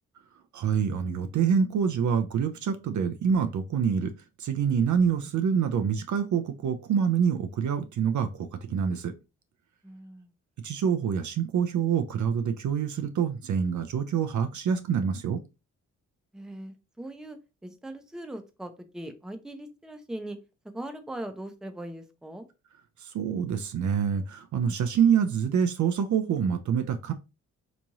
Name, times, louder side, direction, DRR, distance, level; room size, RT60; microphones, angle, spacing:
voice 1, 0.5-4.1 4.4-9.1 10.6-15.4 23.0-27.1, right 7 dB, 50° right, 0.6 m, -26 dB
voice 2, 9.8-10.3 16.3-20.4 20.7-22.5, right 1 dB, ahead, 0.7 m, -40 dB
3.4 x 3.0 x 2.6 m
hypercardioid pair, 45°, 37 cm